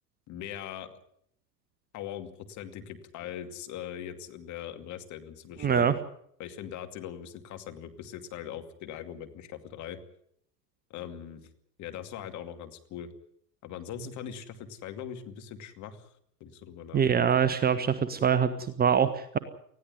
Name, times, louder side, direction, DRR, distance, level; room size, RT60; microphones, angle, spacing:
voice 1, 0.3-0.9 1.9-5.9 6.4-10.0 10.9-11.5 11.8-13.1 13.6-16.1 16.4-17.3, left 9 dB, 35° left, 8 dB, 2.5 m, -41 dB
voice 2, 5.6-5.9 16.9-19.4, right 7 dB, 20° right, 13 dB, 1.1 m, -24 dB
20.0 x 15.5 x 9.6 m, 0.69 s
hypercardioid pair, 100°, 49 cm